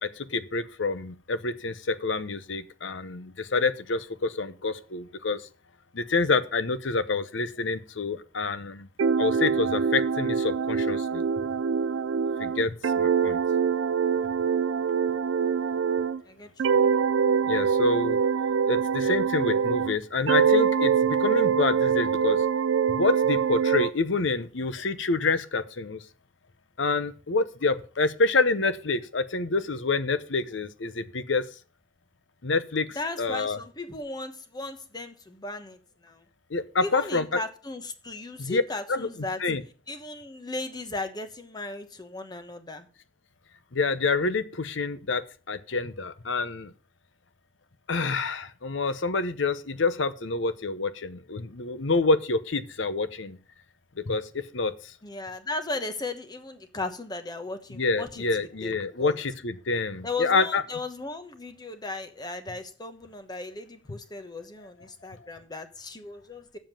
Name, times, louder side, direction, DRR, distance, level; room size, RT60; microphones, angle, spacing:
voice 1, 0.0-5.5 5.9-8.9 9.2-11.2 12.4-13.4 17.5-18.2 18.7-22.4 22.9-26.0 26.8-31.5 32.4-32.9 33.2-33.6 36.5-37.4 38.4-38.6 38.9-39.1 39.4-39.6 43.7-45.2 45.5-46.7 47.9-53.4 54.0-54.9 57.7-60.6 65.1-65.3, left 3 dB, 75° left, 13 dB, 0.9 m, -27 dB
sound 1, 9.0-16.2 16.6-20.0 20.3-23.9, right 7 dB, 85° right, 0.4 m, -24 dB
voice 2, 16.3-16.8 32.9-36.2 36.8-39.4 39.9-42.9 55.0-59.2 60.0-66.6, left 2 dB, 20° left, 8 dB, 1.1 m, -36 dB
7.4 x 7.3 x 7.4 m, 0.38 s
head